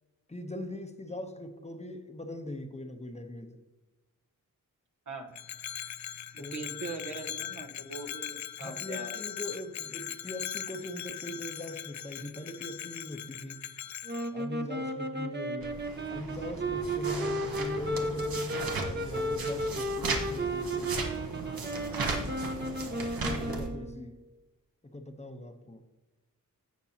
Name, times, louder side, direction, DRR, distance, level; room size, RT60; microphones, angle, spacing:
voice 1, 0.3-3.6 6.4-6.8 8.6-13.6 14.3-15.8 16.1-21.1 23.0-24.2 24.8-25.8, left 1 dB, 20° left, 6 dB, 0.9 m, -41 dB
voice 2, 5.1-5.4 6.3-9.2, right 3 dB, 60° right, 4 dB, 1.2 m, -41 dB
Bell, 5.3-14.3, left 10 dB, 55° left, 0.4 m, -40 dB
sound 1, 14.1-24.1, right 1 dB, 30° right, 1.0 m, -34 dB
sound 2, 15.6-23.7, right 3 dB, 85° right, 1.4 m, -36 dB
15.5 x 5.3 x 2.8 m, 1.2 s
cardioid pair, 70°, 35 cm